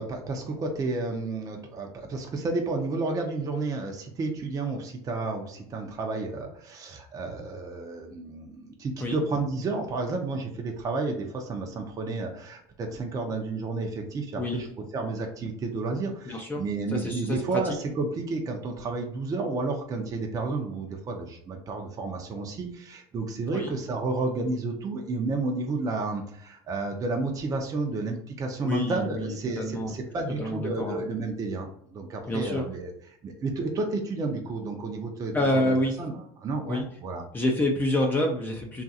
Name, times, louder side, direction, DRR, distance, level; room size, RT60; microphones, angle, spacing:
voice 1, 0.0-37.2, right 3 dB, 30° right, 2 dB, 0.6 m, -31 dB
voice 2, 16.3-16.6 16.9-17.6 23.5-23.7 28.6-29.9 30.4-31.0 32.3-32.6 35.3-35.9 36.7-36.8 37.3-38.8, left 1 dB, 15° left, 1 dB, 0.5 m, -27 dB
2.9 x 2.5 x 2.7 m, 0.68 s
supercardioid pair, 110°, 12 cm